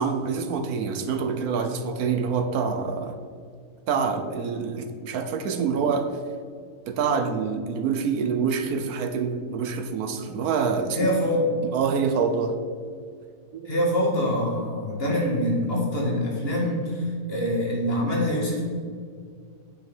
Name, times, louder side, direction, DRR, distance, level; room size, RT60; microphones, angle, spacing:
voice 1, 0.0-3.2 3.9-6.1 6.9-11.1 11.7-12.6 13.5-13.7, right 5 dB, 75° right, 7 dB, 1.2 m, -26 dB
voice 2, 10.9-11.4 13.7-18.6, equal, 40° left, -3 dB, 2.1 m, -25 dB
9.0 x 5.7 x 5.4 m, 2.1 s
omnidirectional pair, 1.6 m